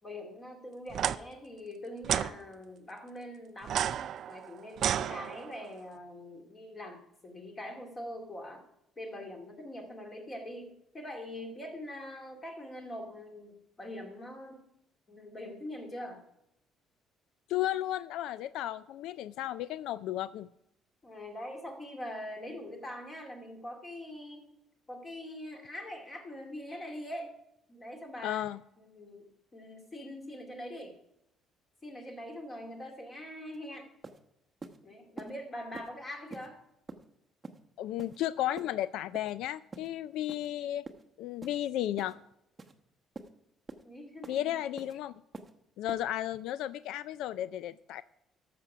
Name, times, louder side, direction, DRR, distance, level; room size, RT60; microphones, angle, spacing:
voice 1, 0.0-3.8 4.3-8.6 9.0-14.6 15.1-16.2 21.0-24.5 24.9-27.3 27.7-28.4 28.8-30.9 31.8-33.9 34.8-36.6 43.8-44.6, left 1 dB, 20° left, 2.3 m, -43 dB
sound 1, 0.9-1.2 2.0-2.3 3.6-5.7, right 9 dB, 50° right, 0.4 m, -31 dB
voice 2, 17.5-20.5 28.2-28.6 37.8-40.8 41.2-42.2 44.3-45.1 45.8-48.0, left 13 dB, 75° left, 0.3 m, -34 dB
sound 2, 33.5-33.6 34.0-34.2 34.6-34.8 35.2-35.3 35.7-35.9 36.3-36.5 36.9-37.0 37.4-37.6 38.0-38.2 38.6-38.7 39.1-39.3 39.7-39.9 40.3-40.5 40.9-41.0 41.4-41.6 42.0-42.1 42.6-42.7 43.2-43.3 43.7-43.8 44.2-44.4 44.8-44.9 45.3-45.5 45.9-46.0, right 3 dB, 15° right, 1.0 m, -45 dB
13.0 x 7.0 x 6.0 m
cardioid pair, 155°, 0 cm